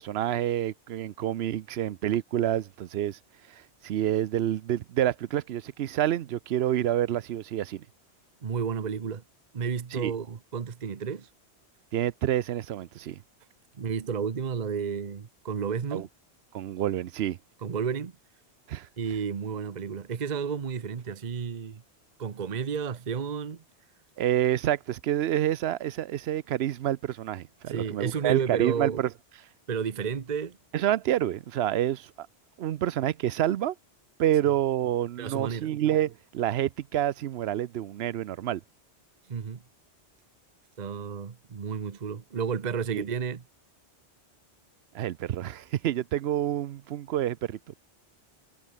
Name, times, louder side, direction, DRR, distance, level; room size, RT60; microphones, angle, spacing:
voice 1, 0.0-3.2 3.5-7.8 9.9-10.1 11.9-13.2 15.9-16.1 16.5-17.4 18.7-18.9 24.2-29.1 30.7-32.3 32.6-33.7 34.2-38.6 42.9-43.0 44.9-47.6, right 12 dB, 70° right, 0.8 m, -28 dB
voice 2, 8.4-9.2 9.5-11.3 13.8-16.1 17.6-18.1 19.0-21.8 22.2-23.6 27.7-29.0 29.7-30.6 35.2-35.7 39.3-39.6 40.8-43.4, right 6 dB, 40° right, 1.0 m, -32 dB
omnidirectional pair, 1.1 m